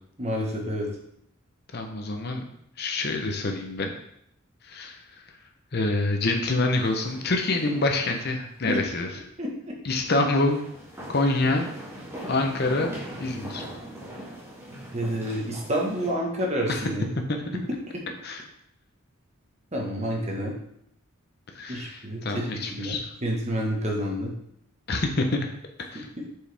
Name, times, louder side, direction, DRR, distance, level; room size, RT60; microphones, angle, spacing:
voice 1, 0.2-0.9 8.7-8.8 9.4-9.5 14.9-17.1 19.7-20.5 21.7-24.3, equal, 30° right, -1 dB, 1.3 m, -29 dB
voice 2, 1.7-2.5 2.8-3.9 4.6-5.4 5.7-9.1 9.8-10.6 11.1-11.7 12.2-12.9 13.2-13.6 16.7-16.9 17.5-17.6 18.2-18.4 21.5-23.1 24.9-25.5 25.9-26.1, left 2 dB, 50° left, 4 dB, 0.7 m, -26 dB
sound 1, 6.7-8.3 8.6-8.7 10.0-16.1, right 1 dB, 10° right, 1.6 m, -41 dB
7.2 x 4.7 x 3.4 m, 0.73 s
head